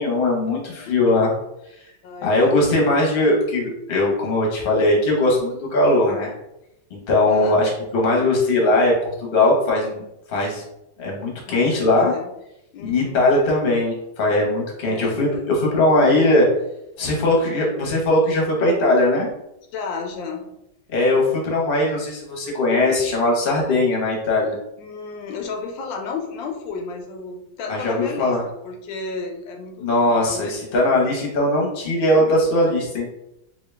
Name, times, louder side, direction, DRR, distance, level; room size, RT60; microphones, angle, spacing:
voice 1, 0.0-1.3 2.2-6.3 6.9-10.0 10.3-10.6 11.0-12.1 12.8-16.5 17.0-19.3 20.9-24.6 27.7-28.4 29.8-33.0, left 2 dB, 40° left, -2 dB, 0.9 m, -19 dB
voice 2, 2.0-2.9 7.3-7.6 11.5-12.3 12.7-13.2 14.8-15.3 19.7-20.5 24.8-28.4 28.6-30.6, left 4 dB, 90° left, 3 dB, 1.4 m, -33 dB
3.7 x 2.7 x 3.3 m, 0.85 s
omnidirectional pair, 2.0 m